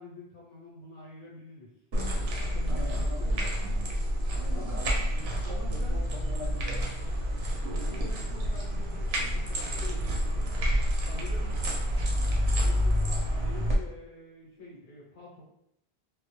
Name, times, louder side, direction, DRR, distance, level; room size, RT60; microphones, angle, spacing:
voice 1, 0.0-1.7 2.4-3.3 4.5-5.1 5.4-6.0 7.8-10.5 11.0-11.5 12.6-15.4, left 2 dB, 70° left, -4 dB, 0.9 m, -46 dB
sound 1, 1.9-13.8, equal, 85° right, 0.8 m, -28 dB
voice 2, 2.7-3.9 4.3-7.0, equal, 55° right, -2 dB, 0.4 m, -43 dB
2.1 x 2.1 x 2.9 m, 0.80 s
omnidirectional pair, 1.0 m